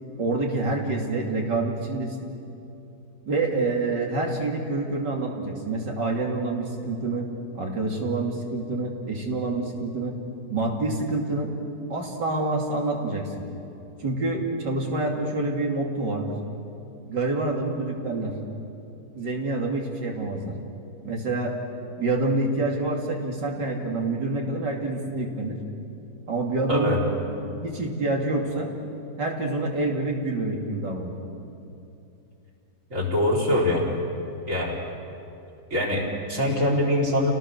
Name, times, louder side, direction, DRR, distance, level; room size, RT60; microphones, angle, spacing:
voice 1, 0.2-2.2 3.3-7.3 7.5-10.2 10.5-11.5 11.9-13.3 14.0-16.4 17.1-18.4 19.1-20.5 21.0-21.6 22.0-25.6 26.3-27.0 27.6-28.7 29.2-31.1, right 2 dB, 85° right, 0 dB, 3.3 m, -27 dB
voice 2, 26.7-27.0 32.9-33.9 34.5-34.8 35.7-37.3, left 1 dB, 50° right, -3 dB, 4.4 m, -23 dB
29.5 x 18.5 x 6.6 m, 2.8 s
omnidirectional pair, 1.8 m